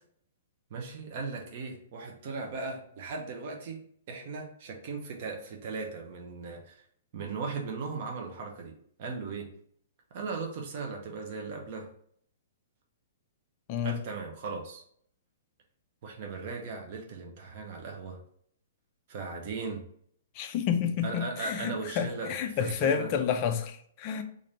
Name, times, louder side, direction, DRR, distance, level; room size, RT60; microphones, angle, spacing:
voice 1, 0.7-3.8 4.1-6.7 7.1-8.7 9.0-9.5 10.1-11.9 13.8-14.8 16.0-18.2 19.1-19.8 21.0-23.1, right 4 dB, 35° right, 2 dB, 0.5 m, -37 dB
voice 2, 20.4-24.2, left 7 dB, 25° left, 6 dB, 0.3 m, -30 dB
3.2 x 2.5 x 4.0 m, 0.63 s
hypercardioid pair, 180°, 0 cm